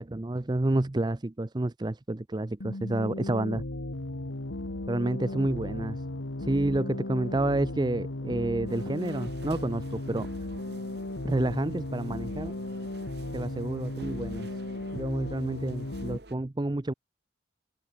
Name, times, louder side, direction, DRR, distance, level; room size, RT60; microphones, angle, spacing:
voice 1, 0.0-3.6 4.9-6.0 6.4-10.3 11.2-12.6 13.3-14.5 14.9-16.9, right 2 dB, 20° right, 0.5 m, -29 dB
sound 1, 2.6-16.2, left 1 dB, 85° left, 1.8 m, -36 dB
sound 2, 8.7-16.4, right 2 dB, 60° right, 2.8 m, -51 dB
head